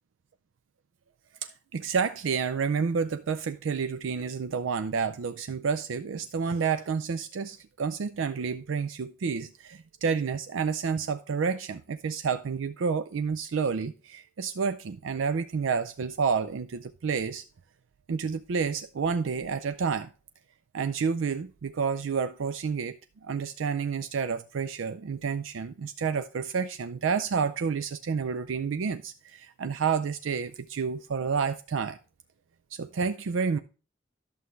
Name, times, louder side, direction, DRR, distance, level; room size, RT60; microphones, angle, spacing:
voice 1, 1.4-17.4 18.1-20.1 20.7-32.0 32.7-33.6, right 5 dB, 85° right, 0.4 m, -30 dB
11.0 x 6.9 x 3.2 m
head